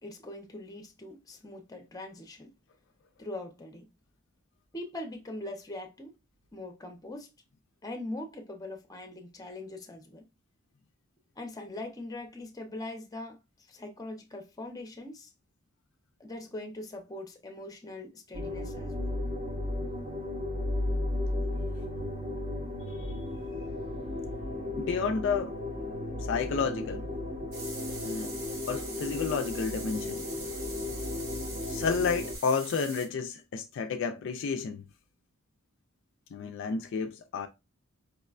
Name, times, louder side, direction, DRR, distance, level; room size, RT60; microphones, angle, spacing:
voice 1, 0.0-2.5 3.2-3.9 4.7-6.1 6.5-7.3 7.8-10.3 11.4-13.4 13.7-15.3 16.2-19.1, left 1 dB, 15° left, 0.6 m, -41 dB
sound 1, 18.3-32.4, left 2 dB, 30° right, 0.7 m, -34 dB
voice 2, 24.8-25.6 26.2-27.1 28.0-28.3 28.7-30.2 31.7-34.8 36.3-37.5, left 5 dB, 60° left, 0.3 m, -31 dB
sound 2, 27.5-33.1, right 3 dB, 85° right, 1.3 m, -43 dB
4.7 x 2.1 x 2.4 m
head